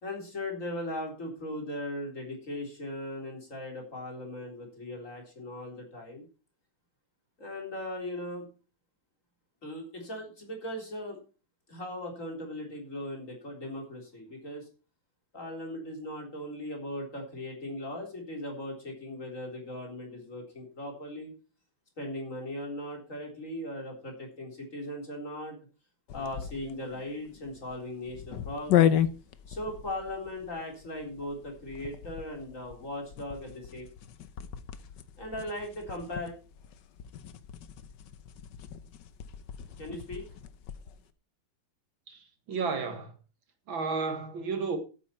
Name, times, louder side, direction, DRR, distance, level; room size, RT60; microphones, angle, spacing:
voice 1, 0.0-6.3 7.4-8.5 9.6-11.2 11.7-14.7 15.3-21.3 22.0-25.6 26.1-29.0 29.5-33.9 35.2-36.3 39.8-40.4, left 1 dB, 35° left, 4.1 m, -38 dB
sound 1, 26.1-41.0, left 10 dB, 65° left, 1.3 m, -34 dB
voice 2, 42.1-43.1 43.7-44.8, right 4 dB, 65° right, 2.3 m, -32 dB
13.5 x 8.6 x 4.4 m
omnidirectional pair, 2.3 m